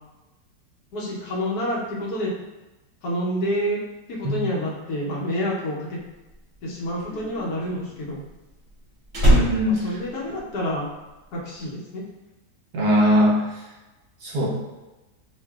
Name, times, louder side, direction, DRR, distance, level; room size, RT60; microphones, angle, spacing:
voice 1, 0.9-2.3 3.0-3.8 4.1-6.0 6.6-8.2 9.7-10.9 11.3-12.0, equal, 65° left, -5 dB, 1.3 m, -28 dB
Slam, 6.2-10.9 11.2-11.6, right 1 dB, 50° right, 1.4 m, -24 dB
voice 2, 9.2-10.0 12.7-13.4 14.2-14.5, equal, 65° right, -4 dB, 1.3 m, -20 dB
5.5 x 2.5 x 2.3 m, 1.1 s
omnidirectional pair, 1.8 m